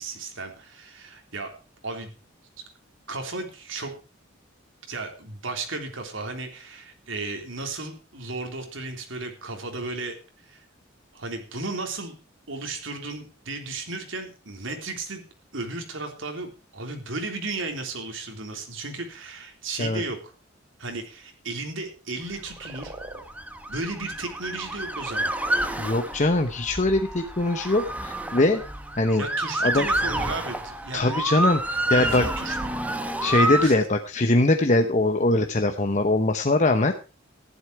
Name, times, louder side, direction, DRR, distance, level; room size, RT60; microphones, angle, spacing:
voice 1, 0.0-1.5 1.8-2.1 3.1-3.9 4.9-10.2 10.4-10.6 11.1-12.1 12.5-15.2 15.5-20.3 20.8-22.9 23.7-25.3 29.2-31.3 31.9-32.6 33.6-33.8, right 3 dB, 75° right, 4 dB, 3.5 m, -34 dB
sound 1, 22.4-23.2 24.7-25.7, right 2 dB, 25° right, 2.0 m, -42 dB
Motor vehicle (road) / Siren, 22.5-33.7, right 1 dB, 5° right, 1.2 m, -29 dB
voice 2, 25.8-28.6 29.0-29.2 29.6-29.9 30.9-32.2 33.2-36.9, left 2 dB, 35° left, 7 dB, 0.9 m, -22 dB
14.5 x 11.5 x 4.7 m, 0.34 s
head